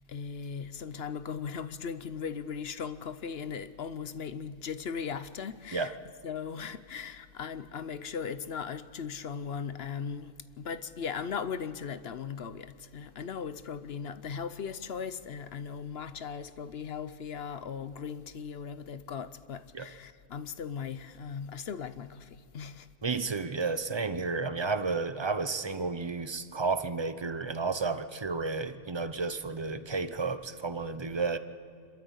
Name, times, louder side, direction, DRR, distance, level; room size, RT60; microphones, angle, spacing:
voice 1, 0.1-6.0 6.2-22.9, left 6 dB, 55° left, 0.8 m, -38 dB
voice 2, 23.0-31.4, right 4 dB, 30° right, 0.6 m, -32 dB
27.0 x 13.0 x 8.1 m
omnidirectional pair, 1.5 m